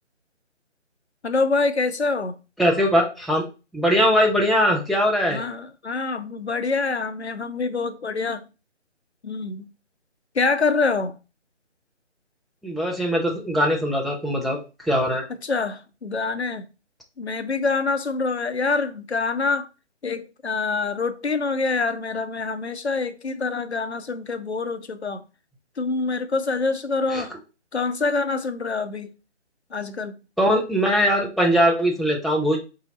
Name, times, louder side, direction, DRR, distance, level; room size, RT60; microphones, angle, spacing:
voice 1, 1.2-2.4 5.3-8.4 9.2-9.7 10.3-11.2 15.4-16.7 17.2-19.7 20.0-25.2 25.8-27.3 27.7-29.1 29.7-30.2, left 4 dB, 65° left, 0.6 m, -25 dB
voice 2, 2.6-3.4 3.7-5.4 12.6-14.6 14.8-15.3 27.1-27.2 30.4-32.6, equal, ahead, 0.4 m, -21 dB
4.0 x 2.8 x 4.0 m
figure-of-eight pair, 155°, 36 cm